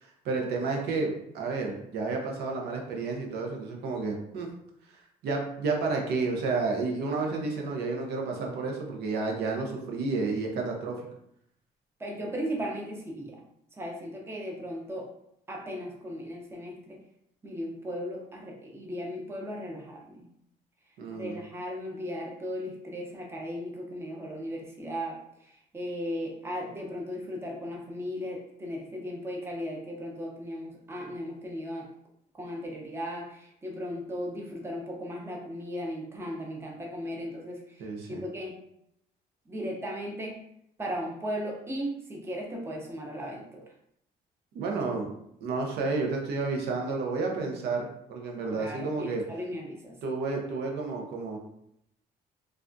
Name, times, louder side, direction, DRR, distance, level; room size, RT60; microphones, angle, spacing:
voice 1, 0.0-4.5 5.2-11.0 21.0-21.4 37.8-38.2 44.5-45.1 45.4-49.2 50.0-51.4, right 3 dB, 75° right, 1 dB, 0.7 m, -31 dB
voice 2, 12.0-13.4 13.7-15.1 15.5-17.0 17.4-20.2 21.1-31.9 32.3-38.5 39.5-40.5 40.8-43.6 48.5-50.0, equal, 15° right, -1 dB, 0.6 m, -36 dB
3.4 x 2.3 x 2.5 m, 0.75 s
cardioid pair, 110°, 17 cm